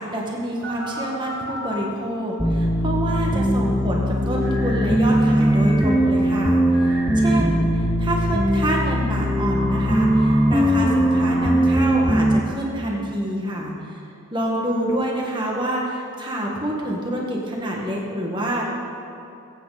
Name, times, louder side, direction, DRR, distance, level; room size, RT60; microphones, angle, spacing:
voice 1, 0.0-14.0 14.3-18.6, right 1 dB, 20° right, -2 dB, 1.8 m, -27 dB
sound 1, 0.6-1.8 4.4-4.9 5.4-7.5 8.4-12.0, right 1 dB, 50° right, 2.3 m, -36 dB
sound 2, 2.4-12.4, equal, ahead, 0.6 m, -20 dB
20.5 x 8.9 x 4.2 m, 2.6 s
head